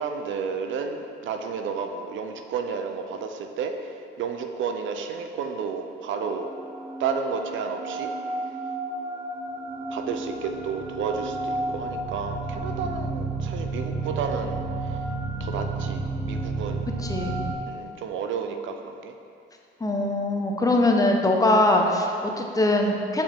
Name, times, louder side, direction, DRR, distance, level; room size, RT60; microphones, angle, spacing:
voice 1, 0.0-6.5 7.0-8.1 9.9-15.0 15.4-16.9 17.7-19.1, right 5 dB, 75° right, 5 dB, 0.6 m, -31 dB
sound 1, 6.2-17.6, right 3 dB, 25° right, 0.7 m, -31 dB
voice 2, 17.0-17.4 19.8-23.2, left 2 dB, 15° left, 1 dB, 0.8 m, -22 dB
7.3 x 5.2 x 3.5 m, 2.5 s
cardioid pair, 90°, 20 cm